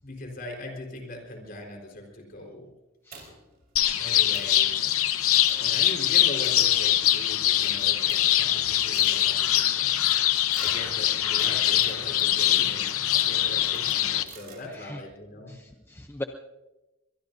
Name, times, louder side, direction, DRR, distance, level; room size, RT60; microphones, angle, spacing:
voice 1, 0.0-2.7 3.9-4.7 5.6-10.2 10.6-15.6, left 1 dB, 45° left, 2 dB, 4.3 m, -40 dB
sound 1, 3.1-3.6 4.0-4.1 4.3-4.6 5.5-5.8 6.4-7.2 7.6-9.6 10.5-14.6, right 4 dB, 45° right, 4.0 m, -49 dB
sound 2, 3.8-14.2, left 12 dB, 85° left, 0.9 m, -23 dB
voice 2, 5.3-5.8 10.5-11.1 12.0-12.1 13.2-13.3 14.7-15.0 15.5-16.2, left 1 dB, 10° left, 5 dB, 0.6 m, -42 dB
23.0 x 22.5 x 2.7 m, 1.0 s
head